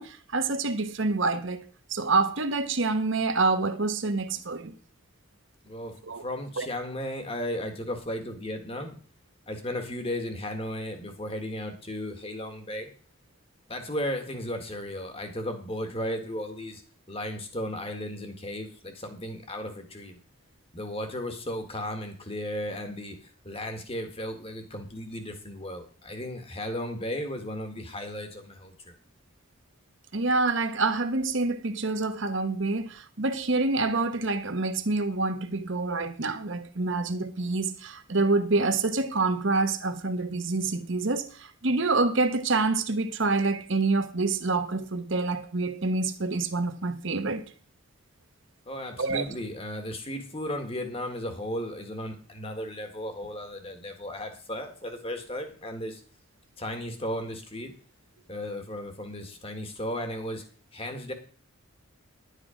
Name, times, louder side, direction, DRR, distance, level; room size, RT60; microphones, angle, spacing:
voice 1, 0.0-4.7 6.0-6.2 6.6-6.7 30.1-47.4 49.0-49.2, right 3 dB, 55° right, 1.1 m, -27 dB
voice 2, 5.6-9.0 9.5-12.9 13.7-16.8 17.1-20.2 20.7-28.9 48.6-56.0 56.6-57.7 58.3-60.4 60.7-61.1, left 1 dB, 25° left, 1.7 m, -35 dB
11.5 x 8.3 x 5.1 m
head